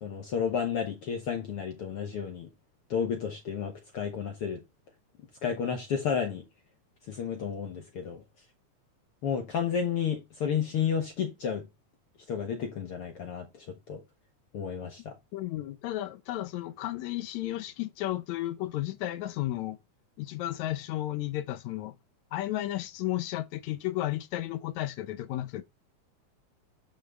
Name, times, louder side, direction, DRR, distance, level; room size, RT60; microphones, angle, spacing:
voice 1, 0.0-2.5 2.9-4.6 5.4-6.4 7.1-8.2 9.2-11.7 12.3-14.0 14.5-15.2, left 7 dB, 60° left, 1.7 m, -31 dB
voice 2, 15.3-19.8 20.2-22.0 22.3-25.6, left 15 dB, 75° left, 1.9 m, -33 dB
7.2 x 5.9 x 4.2 m
omnidirectional pair, 3.5 m